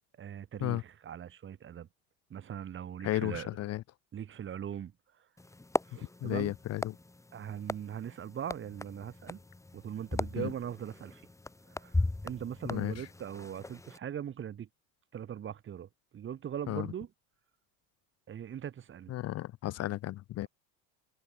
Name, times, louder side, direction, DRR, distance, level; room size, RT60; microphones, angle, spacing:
voice 1, 0.2-1.9 2.3-3.5 4.1-4.9 5.9-6.5 7.3-9.4 9.7-11.2 11.7-14.7 15.1-17.1 18.3-19.1, right 9 dB, 30° right, 4.5 m, -40 dB
voice 2, 3.0-3.8 6.2-6.9 10.4-10.5 12.6-13.1 16.7-16.9 19.1-20.5, left 14 dB, 45° left, 1.3 m, -34 dB
sound 1, 5.4-14.0, left 2 dB, 10° left, 5.6 m, -38 dB
cardioid pair, 145°, 37 cm